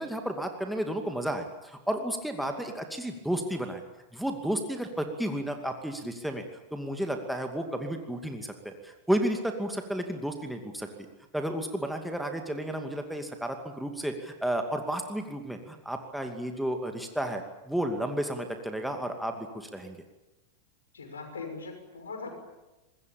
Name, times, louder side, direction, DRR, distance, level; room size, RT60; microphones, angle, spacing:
voice 1, 0.0-3.8 4.1-6.4 6.7-10.9 11.3-20.0, right 1 dB, ahead, 4 dB, 2.5 m, -32 dB
voice 2, 20.9-22.3, left 4 dB, 70° left, 5 dB, 6.3 m, -40 dB
25.0 x 21.0 x 8.8 m, 1.0 s
figure-of-eight pair, 90°, 0 cm